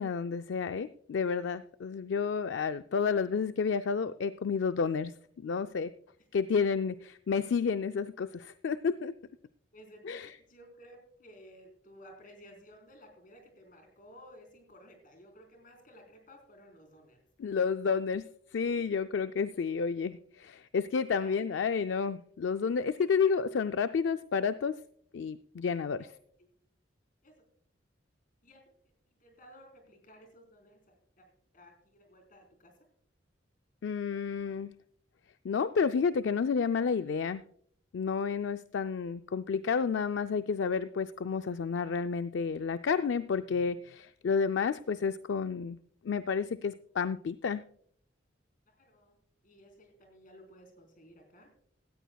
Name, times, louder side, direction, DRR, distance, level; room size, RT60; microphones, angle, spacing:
voice 1, 0.0-5.9 6.3-9.1 10.0-10.3 17.4-24.8 25.1-26.1 33.8-34.7 35.4-37.4 37.9-45.8 46.0-47.6, left 5 dB, 70° left, 11 dB, 0.4 m, -30 dB
voice 2, 9.7-10.2 10.5-17.2 21.2-21.5 26.0-26.1 27.2-27.3 28.4-28.6 29.1-32.7 48.7-49.2 49.4-51.5, equal, 50° left, 3 dB, 4.0 m, -55 dB
17.0 x 13.5 x 2.3 m, 0.63 s
head